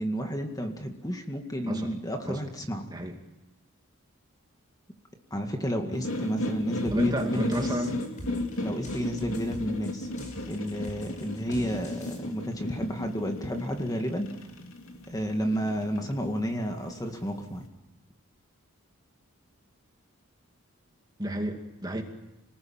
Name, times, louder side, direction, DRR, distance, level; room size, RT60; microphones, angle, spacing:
voice 1, 0.0-2.9 5.3-7.8 8.6-10.1 10.5-14.3 15.1-17.6, equal, 15° left, 4 dB, 2.1 m, -31 dB
sound 1, 5.9-17.6, left 1 dB, 70° left, 3.1 m, -35 dB
sound 2, 6.8-12.2, equal, 35° left, 5.6 m, -44 dB
voice 2, 6.9-8.0 21.2-22.0, right 1 dB, 20° right, 3 dB, 2.4 m, -32 dB
27.5 x 20.0 x 8.9 m, 0.94 s
head